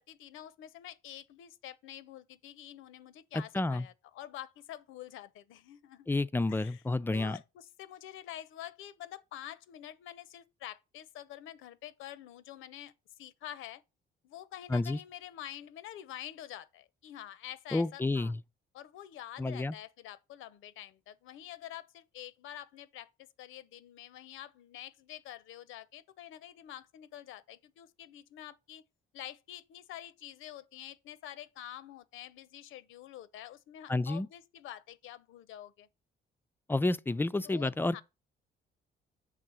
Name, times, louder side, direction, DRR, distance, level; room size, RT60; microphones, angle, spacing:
voice 1, 0.0-6.2 6.5-6.8 7.1-12.9 13.2-13.8 14.2-18.3 18.7-23.1 23.4-28.8 29.1-35.9 37.4-38.0, left 12 dB, 85° left, 0.7 m, -47 dB
voice 2, 3.3-3.9 6.1-7.4 14.7-15.0 17.7-18.4 19.4-19.7 33.9-34.3 36.7-38.0, left 2 dB, 10° left, 0.3 m, -30 dB
6.6 x 3.6 x 6.1 m
cardioid pair, 90°, 20 cm